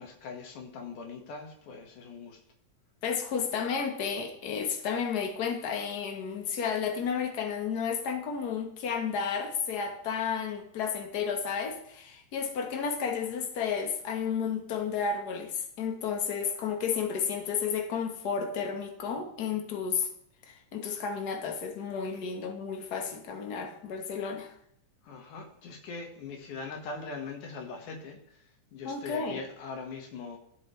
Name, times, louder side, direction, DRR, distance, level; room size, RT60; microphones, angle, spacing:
voice 1, 0.0-2.4 25.0-28.2 28.7-30.4, left 4 dB, 90° left, 3 dB, 3.0 m, -41 dB
voice 2, 3.0-20.1 20.5-24.5 28.8-29.4, left 6 dB, 60° left, 5 dB, 1.0 m, -32 dB
13.0 x 7.8 x 3.1 m, 0.71 s
omnidirectional pair, 3.4 m